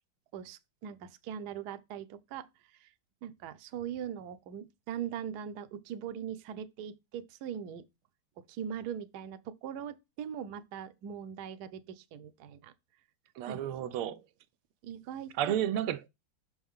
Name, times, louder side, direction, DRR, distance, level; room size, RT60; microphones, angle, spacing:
voice 1, 0.3-2.5 2.7-2.9 3.2-7.8 8.5-12.7 13.4-13.6 14.8-15.5, right 8 dB, 65° right, 1.0 m, -41 dB
voice 2, 13.4-14.2 15.4-16.1, right 11 dB, 90° right, 1.5 m, -31 dB
6.1 x 4.7 x 3.6 m
omnidirectional pair, 2.3 m